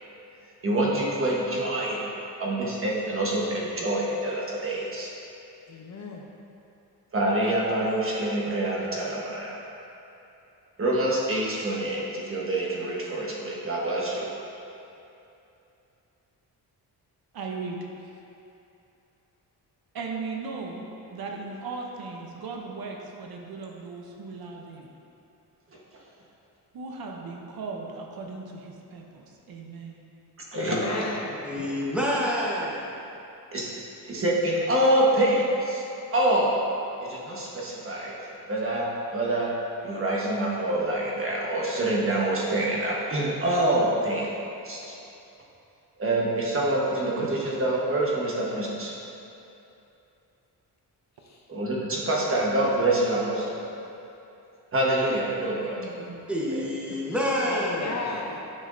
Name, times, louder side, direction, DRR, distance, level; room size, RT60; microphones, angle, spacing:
voice 1, 0.6-2.0 2.4-5.1 7.1-9.5 10.8-14.3 30.5-31.0 33.5-33.7 34.1-35.8 36.1-36.6 37.0-39.5 39.8-44.4 44.6-44.9 46.0-48.9 51.5-53.5 54.7-55.8 56.5-56.6, right 1 dB, 35° right, 1.3 m, -26 dB
voice 2, 5.7-6.2 30.5-31.4 51.2-51.4 57.5-58.4, left 3 dB, 45° left, 0.7 m, -35 dB
voice 3, 17.3-18.1 19.9-20.8 21.1-24.9 26.7-30.0 31.6-31.7 47.2-47.3 55.7-56.2 56.9-57.0, right 4 dB, 65° right, 0.8 m, -37 dB
voice 4, 31.4-32.9 56.3-58.1, equal, 5° right, 1.2 m, -28 dB
9.6 x 6.2 x 2.7 m
wide cardioid pair, 125°, 40 cm